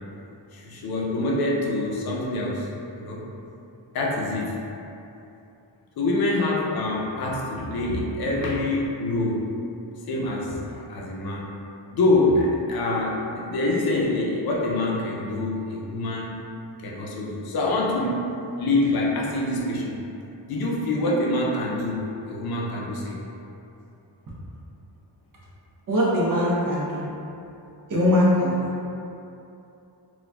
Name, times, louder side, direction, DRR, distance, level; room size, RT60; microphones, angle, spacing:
voice 1, 0.5-2.7 3.0-3.3 3.9-4.6 6.0-9.4 10.1-11.4 11.9-16.4 16.8-18.3 18.6-20.0 20.5-23.2, left 2 dB, 55° left, -3 dB, 0.5 m, -25 dB
voice 2, 25.9-27.0 27.9-28.5, left 1 dB, 45° right, -6 dB, 0.7 m, -21 dB
3.9 x 2.2 x 2.2 m, 2.8 s
wide cardioid pair, 165°, 44 cm